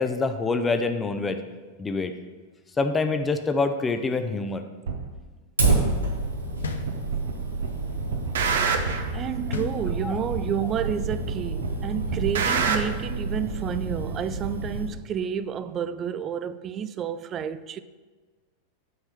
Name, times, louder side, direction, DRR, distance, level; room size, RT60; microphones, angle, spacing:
voice 1, 0.0-1.4 1.8-2.1 2.8-4.6 9.5-9.7 10.0-10.2, left 3 dB, 15° left, 0.7 m, -26 dB
sound 1, 4.9-5.0 5.9-6.0 6.9-7.3 7.6-9.1 9.9-10.0 10.9-11.3 11.6-12.8, right 5 dB, 60° right, 0.9 m, -26 dB
Fire, 5.6-14.8, right 3 dB, 80° right, 1.7 m, -29 dB
sound 2, 6.6-7.5 9.5-10.4, left 4 dB, 70° left, 0.7 m, -35 dB
voice 2, 9.1-17.8, right 8 dB, 30° right, 0.4 m, -30 dB
9.3 x 4.7 x 5.8 m
figure-of-eight pair, 90°, 0 cm